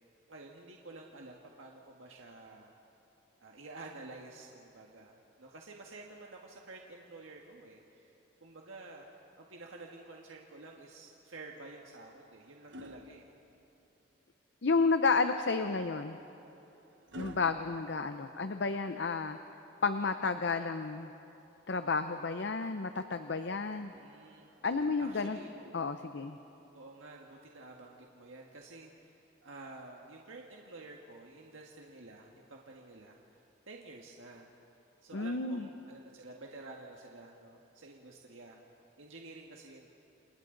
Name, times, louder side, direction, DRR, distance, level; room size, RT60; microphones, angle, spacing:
voice 1, 0.3-2.7 3.4-8.1 8.4-9.1 9.4-13.3 23.9-24.5 25.0-25.7 26.7-34.5 35.0-38.6 39.0-39.9, right 2 dB, 80° right, -1 dB, 1.7 m, -50 dB
sound 1, 11.6-14.0 15.6-18.8 20.6-21.7 23.7-25.6 26.8-27.0, left 1 dB, 65° right, 1.1 m, -54 dB
voice 2, 14.6-16.2 17.2-19.4 19.8-21.1 21.7-23.9 24.6-25.4 25.7-26.4 35.1-35.7, left 4 dB, 60° left, 9 dB, 0.7 m, -31 dB
29.0 x 28.5 x 3.9 m, 3.0 s
head